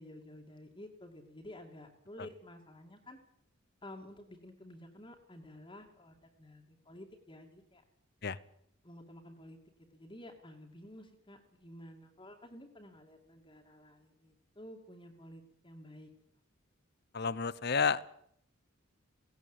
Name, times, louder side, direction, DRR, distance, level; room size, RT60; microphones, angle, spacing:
voice 1, 0.0-3.2 3.8-7.8 8.8-9.6 9.9-16.1, left 1 dB, 25° left, 2 dB, 2.5 m, -52 dB
voice 2, 17.1-18.0, left 5 dB, 50° left, 18 dB, 0.8 m, -31 dB
17.5 x 17.5 x 9.1 m, 0.67 s
head